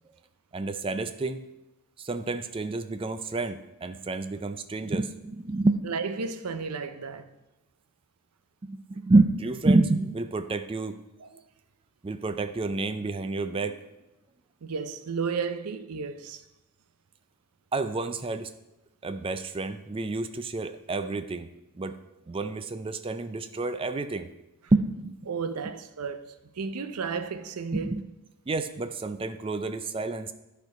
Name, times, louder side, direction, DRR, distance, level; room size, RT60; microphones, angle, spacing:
voice 1, 0.5-1.4 2.0-5.9 8.7-11.0 12.0-13.8 17.7-18.5 19.0-21.5 21.8-22.0 22.3-24.3 24.7-25.3 27.7-28.0 28.5-30.3, right 2 dB, 25° right, 0.4 m, -28 dB
voice 2, 5.8-7.3 11.2-11.3 14.6-16.4 25.3-27.9, right 5 dB, 85° right, 0.6 m, -33 dB
10.5 x 4.5 x 4.9 m
head